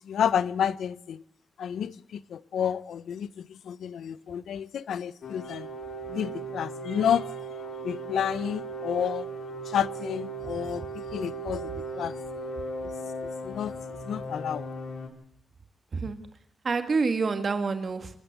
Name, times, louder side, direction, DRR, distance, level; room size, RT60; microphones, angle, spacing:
voice 1, 0.1-1.2 1.6-3.3 3.7-5.7 6.1-7.2 7.8-9.3 9.7-10.8 11.1-12.1 13.4-13.7 14.1-14.7, left 8 dB, 85° left, 0.7 m, -30 dB
sound 1, 5.2-15.1, right 2 dB, 60° left, 3.5 m, -37 dB
voice 2, 16.6-18.2, right 4 dB, 35° right, 2.2 m, -28 dB
26.5 x 12.5 x 8.3 m
wide cardioid pair, 170°, 0 cm